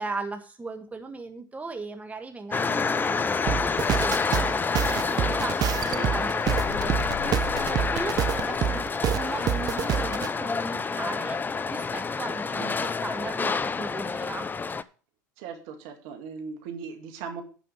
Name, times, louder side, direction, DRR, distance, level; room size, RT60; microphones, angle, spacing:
voice 1, 0.0-4.6 4.8-5.6 5.9-14.5, right 3 dB, 15° right, 5 dB, 1.5 m, -37 dB
sound 1, 2.5-14.8, left 5 dB, 20° left, 0.5 m, -28 dB
sound 2, 3.5-10.3, right 10 dB, 40° right, 0.7 m, -28 dB
sound 3, 6.5-9.2, left 13 dB, 50° left, 0.8 m, -38 dB
voice 2, 15.4-17.4, right 6 dB, 60° right, 5 dB, 2.1 m, -38 dB
11.0 x 5.0 x 6.8 m, 0.39 s
hypercardioid pair, 80°, 10 cm